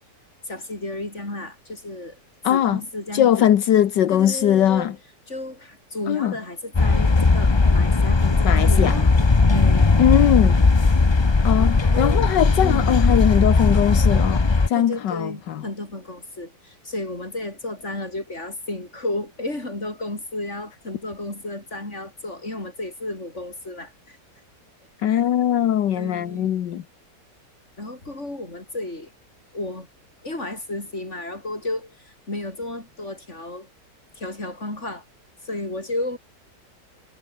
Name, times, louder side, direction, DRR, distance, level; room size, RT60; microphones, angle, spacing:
voice 1, 0.4-2.2 2.5-3.5 4.1-5.0 5.3-9.1 9.5-9.9 11.5-12.2 12.6-13.0 14.7-24.2 25.1-25.2 25.9-26.5 27.8-29.1 29.5-29.9 30.2-33.7 34.1-35.0 35.4-36.2, left 2 dB, 40° left, 6.8 m, -33 dB
voice 2, 2.4-2.8 3.1-4.9 6.1-6.3 8.4-9.0 10.0-10.6 11.4-15.6 25.0-26.8, left 10 dB, 75° left, 1.7 m, -20 dB
sound 1, 6.7-14.7, left 3 dB, 25° left, 0.6 m, -17 dB
omnidirectional pair, 1.9 m